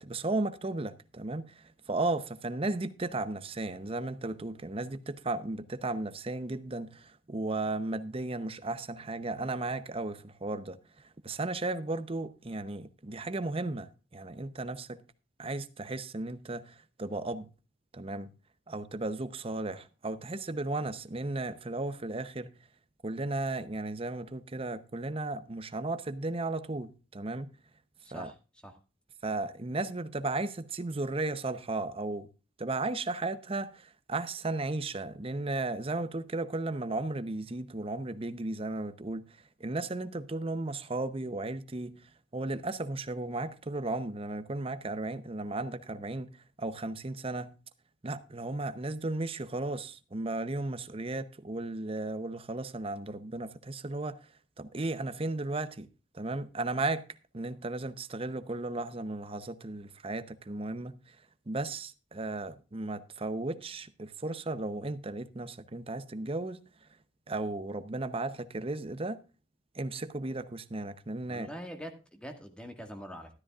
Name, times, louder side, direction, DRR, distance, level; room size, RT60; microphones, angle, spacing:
voice 1, 0.0-15.0 15.4-17.5 17.9-18.3 18.7-22.5 23.0-27.5 28.1-28.3 29.2-32.3 32.6-46.3 46.6-47.5 48.0-54.2 54.6-55.9 56.1-57.0 57.3-61.2 61.5-66.6 67.3-69.2 69.7-71.5, right 2 dB, 30° right, 0.8 m, -35 dB
voice 2, 28.0-28.3 28.6-28.7 71.3-73.3, equal, 5° left, 1.7 m, -43 dB
13.0 x 12.5 x 2.4 m
head